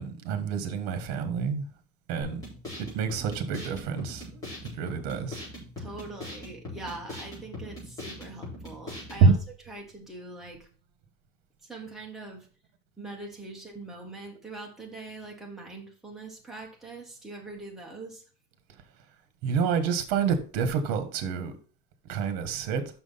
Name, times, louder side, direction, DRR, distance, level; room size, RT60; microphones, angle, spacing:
voice 1, 0.0-1.6 2.1-2.4 2.8-4.4 4.8-5.4 9.2-9.3 19.4-21.5 22.1-22.8, right 5 dB, 55° right, 1.4 m, -27 dB
sound 1, 2.2-9.2, left 1 dB, 20° left, 4.2 m, -40 dB
voice 2, 5.8-9.4 9.7-10.7 11.6-12.5 13.0-18.2, right 2 dB, ahead, 1.6 m, -42 dB
6.2 x 6.1 x 5.6 m
cardioid pair, 175°, 19 cm